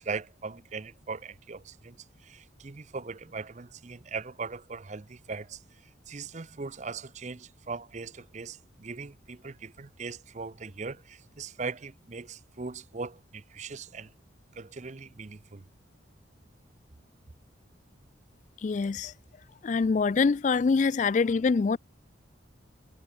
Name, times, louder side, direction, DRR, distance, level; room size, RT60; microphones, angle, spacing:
voice 1, 0.0-2.0 2.2-5.6 6.1-14.1 14.5-15.6, right 4 dB, 35° right, 0.6 m, -39 dB
voice 2, 18.6-19.1 19.6-21.8, left 4 dB, 40° left, 0.3 m, -24 dB
head